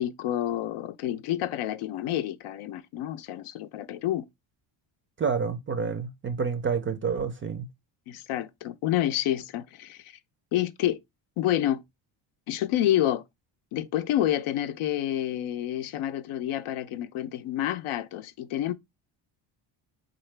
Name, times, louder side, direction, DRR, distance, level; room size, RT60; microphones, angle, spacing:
voice 1, 0.0-4.3 8.1-10.2 10.5-11.0 11.4-11.8 12.5-13.2 13.7-18.7, left 12 dB, 80° left, 0.6 m, -28 dB
voice 2, 5.2-7.7, right 5 dB, 25° right, 0.4 m, -28 dB
4.0 x 3.8 x 3.2 m
cardioid pair, 120°, 50 cm